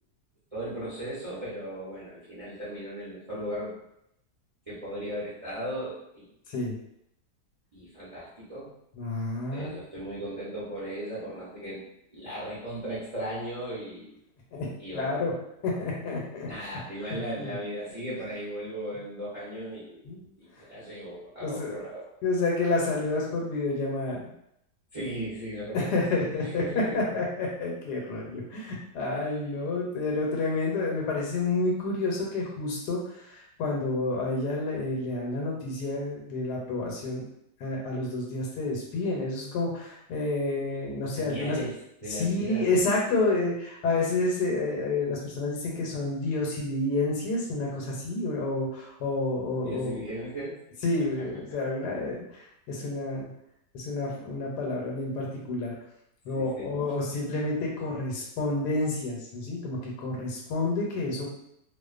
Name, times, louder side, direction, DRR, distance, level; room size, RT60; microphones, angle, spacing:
voice 1, 0.5-3.8 4.7-6.3 7.7-8.7 9.5-11.8 12.1-14.1 14.8-15.2 16.5-20.0 20.4-22.1 24.9-25.9 26.6-27.2 29.1-29.2 41.1-41.8 42.0-42.7 49.6-50.6 56.3-56.7, right 1 dB, 35° right, -9 dB, 0.6 m, -37 dB
voice 2, 8.9-9.8 14.5-15.3 15.6-16.8 17.1-17.6 20.0-20.2 21.4-21.9 22.2-24.3 25.7-33.0 33.3-37.2 37.6-41.6 42.1-50.0 50.8-53.3 53.7-55.7 56.3-61.3, left 2 dB, 90° left, -2 dB, 1.2 m, -29 dB
2.5 x 2.4 x 2.3 m, 0.77 s
omnidirectional pair, 1.8 m